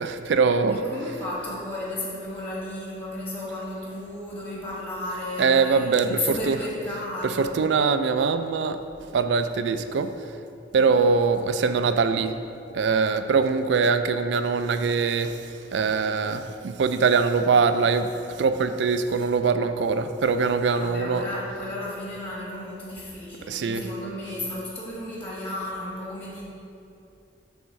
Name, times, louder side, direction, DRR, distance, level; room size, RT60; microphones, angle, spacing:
voice 1, 0.0-0.8 5.4-6.6 7.2-8.8 9.1-10.1 10.7-12.3 12.7-15.5 15.7-21.3 23.5-23.9, right 5 dB, 75° right, 10 dB, 0.4 m, -23 dB
voice 2, 0.7-7.5 10.8-11.2 20.8-26.4, left 1 dB, 30° left, -6 dB, 1.3 m, -34 dB
6.9 x 3.6 x 6.3 m, 2.7 s
head